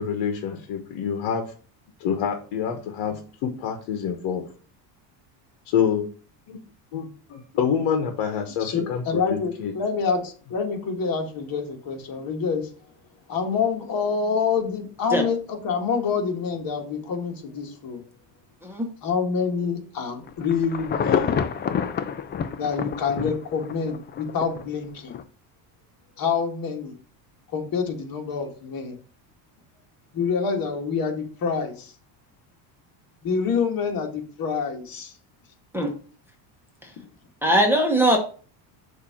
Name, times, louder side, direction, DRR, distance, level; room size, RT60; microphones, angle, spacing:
voice 1, 0.0-1.5 2.0-4.5 5.6-6.1 6.5-6.6 6.9-9.7, left 7 dB, 70° left, 5 dB, 1.2 m, -27 dB
voice 2, 8.6-12.7 13.3-18.0 19.0-21.4 22.6-25.2 26.2-26.9 27.5-29.0 30.1-31.9 33.2-35.1 37.0-37.1, left 5 dB, 45° left, 3 dB, 1.7 m, -27 dB
Insect / Thunder / Rain, 20.3-24.6 25.1-25.2, left 7 dB, 25° left, 0.4 m, -27 dB
voice 3, 37.4-38.2, right 1 dB, 5° right, 1 dB, 1.1 m, -20 dB
6.6 x 2.8 x 5.7 m, 0.40 s
cardioid pair, 125°, 48 cm